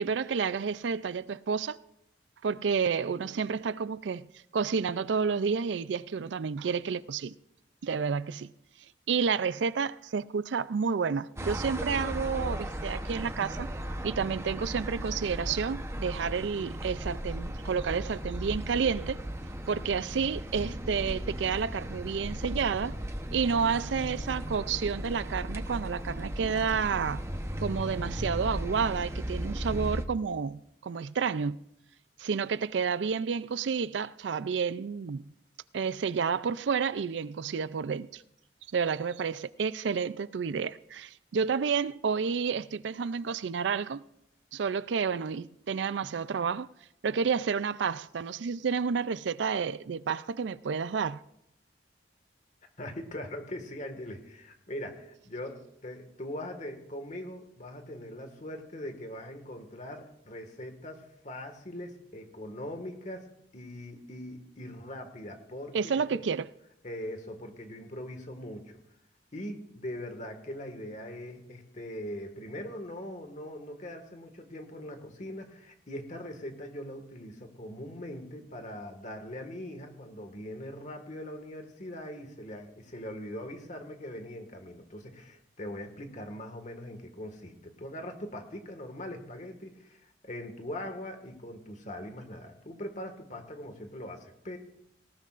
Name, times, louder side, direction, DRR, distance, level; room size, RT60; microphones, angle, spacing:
voice 1, 0.0-1.8 2.4-4.3 4.5-7.4 7.8-8.5 9.1-13.7 14.0-19.2 19.7-22.9 23.3-27.2 27.6-31.6 32.2-35.2 35.7-38.2 38.7-44.0 44.5-46.7 47.0-51.2 65.7-66.4, right 6 dB, 80° right, 0.4 m, -30 dB
sound 1, 11.4-30.1, equal, 15° right, 0.9 m, -36 dB
voice 2, 52.8-63.3 63.5-66.2 66.8-68.8 69.3-94.6, left 1 dB, 45° left, 1.8 m, -41 dB
18.5 x 18.0 x 2.5 m
head